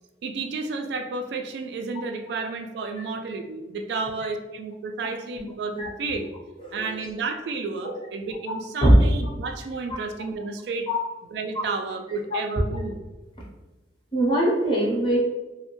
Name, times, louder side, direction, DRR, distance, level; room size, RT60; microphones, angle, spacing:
voice 1, 0.2-6.3 6.7-10.9 11.3-13.0, right 3 dB, 70° right, 6 dB, 0.3 m, -31 dB
voice 2, 14.1-15.2, right 1 dB, 25° left, -5 dB, 0.8 m, -22 dB
3.1 x 2.1 x 3.0 m, 1.1 s
head